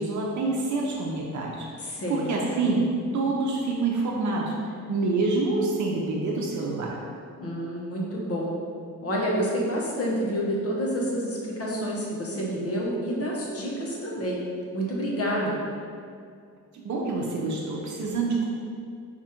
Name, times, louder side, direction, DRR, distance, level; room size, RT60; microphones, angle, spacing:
voice 1, 0.0-2.8 3.1-4.5 4.9-7.0 16.8-18.5, right 3 dB, 65° right, -2 dB, 0.6 m, -27 dB
voice 2, 1.9-2.3 7.4-8.5 9.0-14.4 14.7-15.6, equal, 50° left, -3 dB, 0.9 m, -28 dB
5.0 x 2.4 x 4.3 m, 2.3 s
cardioid pair, 120°, 31 cm